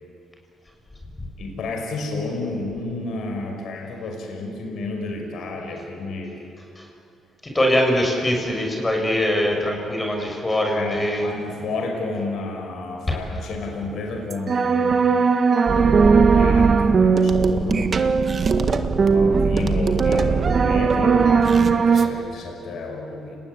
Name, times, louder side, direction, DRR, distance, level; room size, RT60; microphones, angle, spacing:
voice 1, 1.4-6.4 10.7-15.1 15.8-18.1 18.7-23.4, left 3 dB, 70° left, 2 dB, 5.4 m, -31 dB
voice 2, 7.4-11.3, left 1 dB, 20° left, 1 dB, 6.7 m, -22 dB
sound 1, 14.3-22.1, right 5 dB, 45° right, 1.8 m, -18 dB
30.0 x 20.0 x 9.9 m, 2.8 s
cardioid pair, 90°, 0 cm